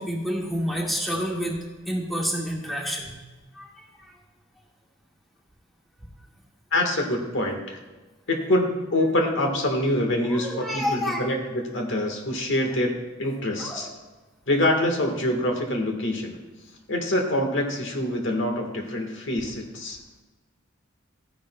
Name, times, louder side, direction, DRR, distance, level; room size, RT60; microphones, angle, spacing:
voice 1, 0.0-3.1 3.5-4.1 10.2-11.2 13.6-13.8, equal, ahead, -3 dB, 1.6 m, -29 dB
voice 2, 6.7-7.8 8.3-12.9 13.2-13.9 14.5-16.4 16.9-20.0, left 1 dB, 70° left, 2 dB, 1.4 m, -25 dB
14.5 x 10.0 x 2.2 m, 1.2 s
head